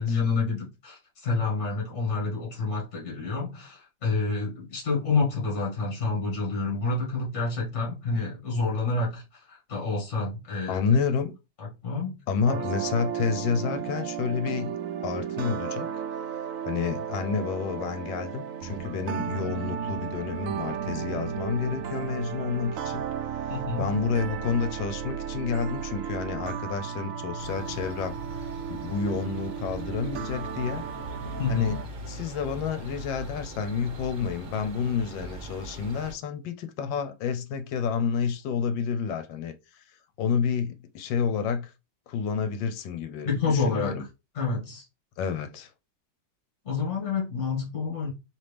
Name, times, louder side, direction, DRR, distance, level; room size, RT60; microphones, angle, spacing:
voice 1, 0.0-11.0 11.6-12.1 23.5-23.9 31.4-31.8 43.2-43.9 44.3-44.8 46.6-48.1, left 4 dB, 40° left, 2.1 m, -28 dB
voice 2, 10.7-11.3 12.3-14.8 15.0-15.9 16.7-23.0 23.4-23.5 23.8-28.2 28.7-30.8 31.5-39.5 40.2-41.7 42.1-44.0 45.2-45.7, left 6 dB, 80° left, 1.4 m, -29 dB
sound 1, 12.5-31.8, right 8 dB, 90° right, 0.7 m, -34 dB
sound 2, 27.4-36.1, right 1 dB, 40° right, 0.9 m, -41 dB
4.4 x 3.0 x 3.3 m
omnidirectional pair, 2.0 m